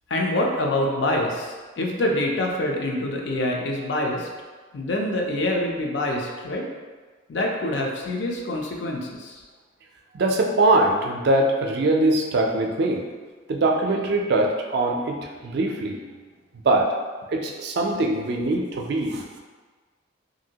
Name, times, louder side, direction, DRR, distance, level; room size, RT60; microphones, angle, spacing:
voice 1, 0.1-4.3 4.7-6.7 7.3-9.4, left 1 dB, 65° left, 0 dB, 0.4 m, -25 dB
voice 2, 10.1-13.0 13.5-15.2 15.4-16.0 16.6-16.9 17.3-19.4, right 2 dB, 55° right, 1 dB, 0.4 m, -22 dB
2.9 x 2.6 x 2.7 m, 1.4 s
head